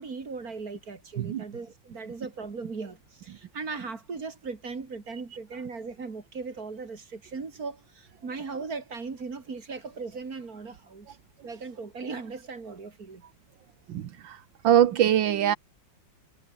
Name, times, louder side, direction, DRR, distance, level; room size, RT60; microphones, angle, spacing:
voice 1, 0.0-11.2 11.4-13.2, right 4 dB, 50° right, 3.0 m, -38 dB
voice 2, 13.9-14.4 14.6-15.6, right 10 dB, 75° right, 1.7 m, -22 dB
omnidirectional pair, 2.1 m